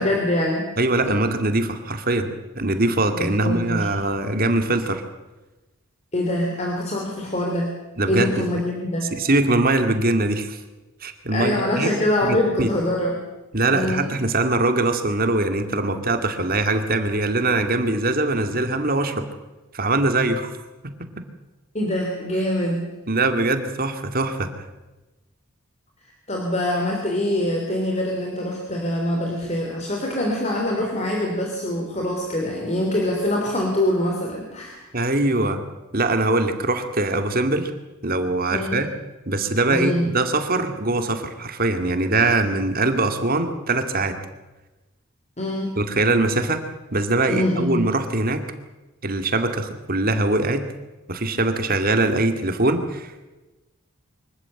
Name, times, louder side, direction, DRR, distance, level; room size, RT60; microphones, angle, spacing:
voice 1, 0.0-0.7 1.1-1.2 3.2-3.9 6.1-7.7 8.1-9.1 11.3-13.2 13.7-14.1 21.7-22.9 26.3-34.9 38.5-38.9 39.7-40.1 45.4-45.7 47.3-47.9, left 1 dB, 30° left, 1 dB, 3.1 m, -24 dB
voice 2, 0.8-5.0 8.0-8.4 9.1-10.6 11.0-11.9 12.2-12.7 13.5-19.3 19.7-20.5 20.8-21.3 23.1-24.7 34.9-35.6 35.9-37.7 38.0-38.9 39.3-44.2 45.8-46.6 46.9-48.4 49.0-50.6 51.1-53.3, right 2 dB, 40° right, 7 dB, 2.2 m, -22 dB
24.5 x 14.5 x 9.0 m, 1.1 s
head